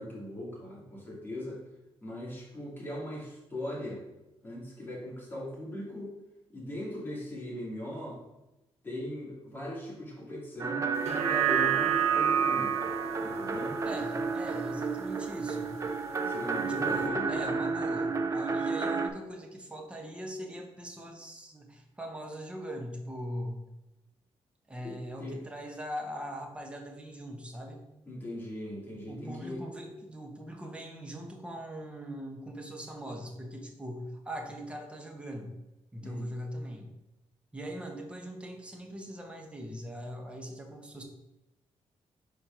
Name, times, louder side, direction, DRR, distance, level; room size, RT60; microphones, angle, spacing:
voice 1, 0.0-1.6 2.0-4.0 4.4-6.1 6.5-8.2 8.8-12.7 13.2-13.8 16.2-17.3 24.8-25.4 28.1-29.6 36.0-36.3, left 1 dB, 20° left, -5 dB, 2.2 m, -39 dB
sound 1, 10.6-19.1, right 4 dB, 30° right, 0.4 m, -32 dB
sound 2, 10.9-15.5 15.9-16.0, right 9 dB, 75° right, 0.7 m, -30 dB
voice 2, 13.8-15.7 16.7-23.6 24.7-27.8 29.1-35.5 35.9-36.9 37.5-41.0, equal, 10° right, 2 dB, 0.9 m, -41 dB
4.5 x 3.7 x 5.5 m, 0.98 s
wide cardioid pair, 140°, 11 cm